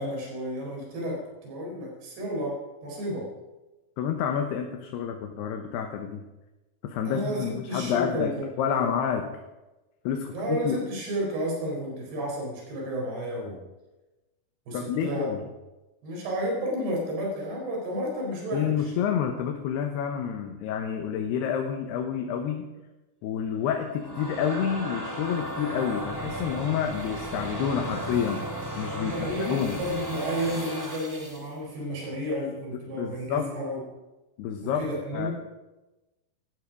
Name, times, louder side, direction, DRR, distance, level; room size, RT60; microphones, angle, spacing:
voice 1, 0.0-3.3 7.1-8.5 8.7-8.9 10.3-13.6 14.7-15.3 16.0-18.9 29.0-33.8 34.6-35.3, equal, 80° right, -2 dB, 6.3 m, -32 dB
voice 2, 4.0-6.2 6.8-8.3 8.6-9.3 10.0-10.8 14.7-15.4 18.5-22.7 23.2-28.4 28.8-29.8 32.9-33.5 34.4-34.8 35.1-35.3, left 8 dB, 85° left, 3 dB, 3.2 m, -29 dB
sound 1, 23.7-31.5, right 1 dB, 5° right, 2.2 m, -35 dB
17.5 x 12.5 x 5.1 m, 1.1 s
omnidirectional pair, 4.6 m